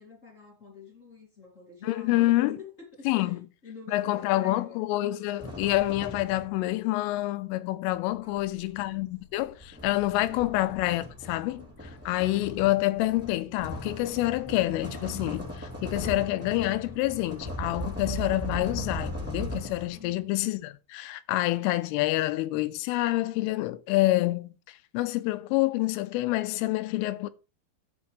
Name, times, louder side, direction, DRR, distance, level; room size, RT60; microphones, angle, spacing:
voice 1, 0.0-4.9 8.2-9.0 19.9-20.5, left 4 dB, 30° left, 1.3 m, -48 dB
voice 2, 1.8-2.6 3.1-3.4 3.9-11.7 12.1-27.3, left 17 dB, 85° left, 3.2 m, -27 dB
sound 1, 5.4-6.7 7.9-20.1, equal, 5° right, 1.6 m, -38 dB
12.0 x 7.9 x 3.2 m
omnidirectional pair, 5.7 m